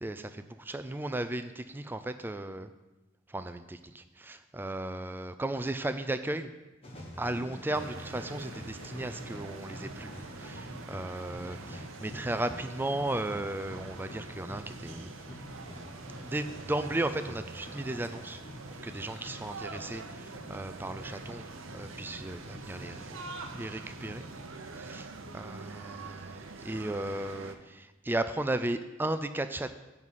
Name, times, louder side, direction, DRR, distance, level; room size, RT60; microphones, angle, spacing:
voice 1, 0.0-2.7 3.3-6.5 7.2-15.1 16.2-18.4 18.7-21.4 21.7-23.2 23.5-24.3 24.7-29.7, right 1 dB, 10° right, 10 dB, 0.3 m, -35 dB
sound 1, 6.8-25.4, equal, 30° left, 1.4 m, -47 dB
sound 2, 7.7-27.6, right 4 dB, 75° right, 0.7 m, -45 dB
9.4 x 4.1 x 7.4 m, 1.1 s
head